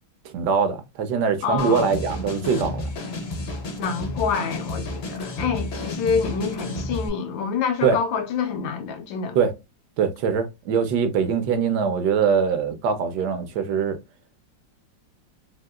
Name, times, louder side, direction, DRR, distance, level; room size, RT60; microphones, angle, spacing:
voice 1, 0.2-2.9 7.8-8.0 9.3-9.5 10.0-14.0, right 6 dB, 70° right, 1.1 m, -22 dB
voice 2, 1.4-1.9 3.8-9.4, left 6 dB, 85° left, 1.4 m, -27 dB
sound 1, 1.6-7.1, left 2 dB, 55° left, 0.7 m, -31 dB
3.5 x 2.7 x 2.2 m
omnidirectional pair, 2.0 m